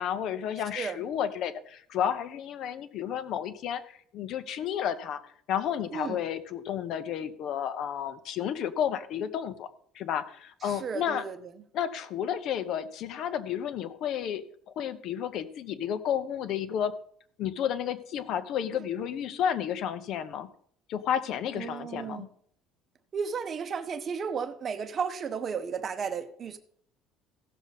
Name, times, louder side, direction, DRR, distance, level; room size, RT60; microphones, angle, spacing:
voice 1, 0.0-5.2 5.5-9.7 9.9-11.2 11.7-16.9 17.4-20.5 20.9-22.3, left 9 dB, 50° left, 0.9 m, -31 dB
voice 2, 5.9-6.2 10.6-11.4 18.7-18.8 21.5-22.3 23.1-26.6, right 6 dB, 25° right, 0.9 m, -34 dB
16.0 x 6.8 x 4.1 m
cardioid pair, 175°, 0 cm